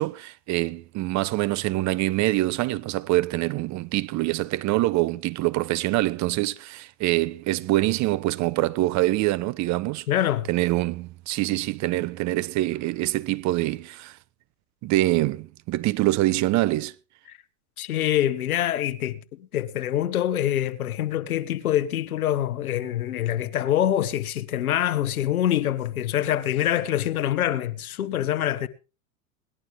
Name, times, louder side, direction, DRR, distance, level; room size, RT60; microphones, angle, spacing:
voice 1, 0.0-10.1 10.5-14.2 14.8-16.9, right 18 dB, 40° right, 0.9 m, -25 dB
voice 2, 10.1-10.5 17.3-17.4 17.8-28.7, left 11 dB, 90° left, 1.3 m, -25 dB
19.5 x 11.5 x 3.5 m
hypercardioid pair, 105°, 42 cm